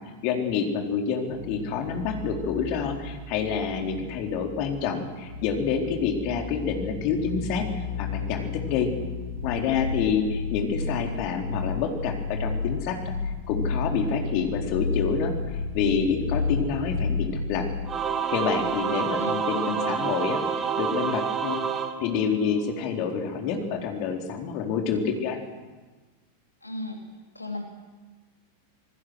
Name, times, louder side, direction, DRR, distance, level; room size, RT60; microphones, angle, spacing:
voice 1, 0.2-7.7 8.0-8.9 9.4-13.1 13.5-15.3 15.7-17.6 18.3-21.6 22.0-25.4, left 6 dB, 45° left, 2 dB, 3.9 m, -28 dB
sound 1, 1.3-18.8 19.1-19.2, left 4 dB, 65° left, 4.7 m, -32 dB
Singing / Musical instrument, 17.9-22.7, right 6 dB, 25° right, 2.2 m, -28 dB
voice 2, 19.2-20.0 26.6-27.0 27.3-27.6, left 2 dB, 85° left, 3 dB, 2.5 m, -35 dB
27.0 x 20.0 x 6.5 m, 1.3 s
figure-of-eight pair, 90°, 0 cm